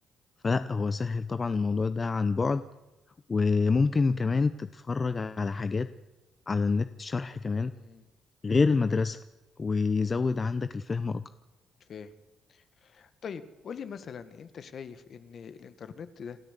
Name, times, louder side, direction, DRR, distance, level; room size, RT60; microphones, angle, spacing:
voice 1, 0.4-2.6 3.3-5.9 6.5-7.7 8.4-9.2 9.6-11.2, left 4 dB, 30° left, 12 dB, 0.8 m, -27 dB
voice 2, 7.6-8.1 11.9-12.1 12.8-16.4, left 6 dB, 55° left, 11 dB, 1.7 m, -43 dB
28.0 x 13.5 x 8.3 m, 1.0 s
cardioid pair, 90°, 0 cm